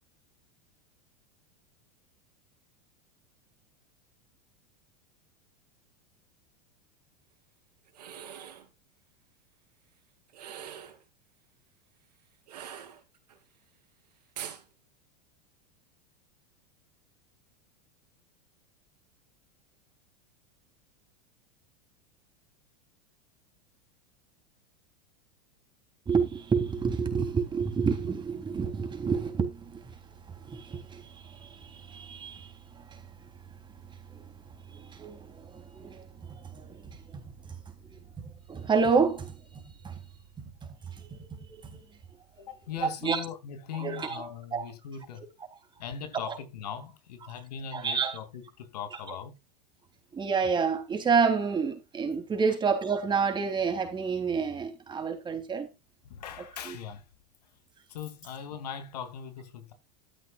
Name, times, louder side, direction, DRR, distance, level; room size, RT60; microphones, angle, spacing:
sound 1, 7.9-8.7 10.3-11.0 12.5-13.4 14.4-14.6, right 9 dB, 75° right, 3.5 m, -43 dB
voice 1, 26.1-29.8 30.5-31.0 31.4-32.5 34.9-35.3 35.5-36.8 37.1-37.2 38.2-39.9 40.4-40.5 41.1-41.8 42.8-43.2 43.8-44.7 46.3-46.4 47.2-47.3 47.7-48.2 50.1-55.7 56.7-56.8, right 5 dB, 20° right, 3.5 m, -29 dB
voice 2, 42.4-45.3 45.8-49.4 56.0-57.1 57.9-59.7, left 8 dB, 75° left, 2.9 m, -40 dB
13.5 x 10.0 x 2.5 m
hypercardioid pair, 100°, 21 cm